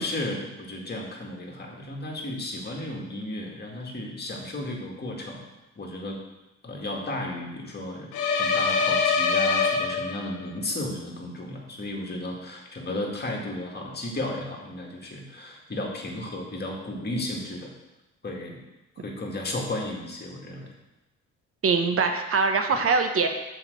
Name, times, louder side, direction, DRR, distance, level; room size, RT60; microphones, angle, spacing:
voice 1, 0.0-5.5 5.8-6.2 6.6-8.1 8.4-17.7 18.2-18.6 19.0-20.7, left 1 dB, 35° left, -1 dB, 2.1 m, -34 dB
sound 1, 8.1-10.5, left 5 dB, 80° left, 1.1 m, -24 dB
voice 2, 21.6-23.3, right 4 dB, 50° right, 5 dB, 1.1 m, -23 dB
5.7 x 5.2 x 6.7 m, 1.0 s
cardioid pair, 90°, 30 cm